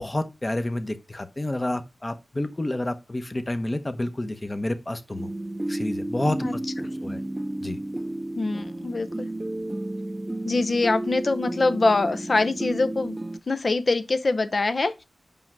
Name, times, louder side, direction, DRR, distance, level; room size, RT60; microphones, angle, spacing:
voice 1, 0.0-5.3 5.7-6.5 6.8-7.2 7.6-7.8, left 1 dB, 25° left, 1.0 m, -29 dB
sound 1, 5.1-13.4, right 1 dB, 15° right, 0.3 m, -32 dB
voice 2, 8.3-9.3 10.4-13.2 13.5-15.0, left 3 dB, 50° left, 0.8 m, -24 dB
5.6 x 5.5 x 6.0 m
wide cardioid pair, 105°, 0 cm